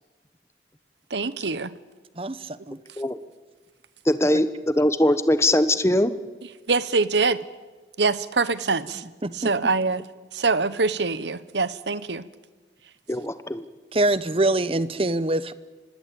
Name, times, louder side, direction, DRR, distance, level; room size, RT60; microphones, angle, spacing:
voice 1, 1.1-1.7 6.7-7.4 8.0-9.0 9.3-10.1 10.3-12.3, right 4 dB, 75° right, 16 dB, 1.0 m, -24 dB
voice 2, 2.2-2.8 9.2-9.5 13.9-15.5, right 2 dB, 30° right, 16 dB, 0.8 m, -24 dB
voice 3, 4.1-6.2 13.1-13.6, left 1 dB, 15° left, 13 dB, 1.0 m, -21 dB
25.0 x 19.0 x 8.6 m, 1.3 s
head